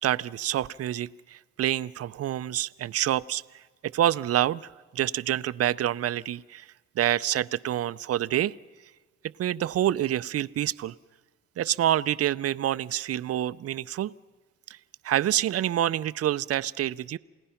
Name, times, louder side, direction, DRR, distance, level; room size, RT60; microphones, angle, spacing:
voice 1, 0.0-3.4 3.8-6.7 7.0-8.5 9.4-10.9 11.6-14.1 14.7-14.8 15.0-17.2, right 12 dB, 50° right, 16 dB, 0.6 m, -27 dB
28.5 x 17.5 x 5.8 m, 1.3 s
cardioid pair, 90°, 30 cm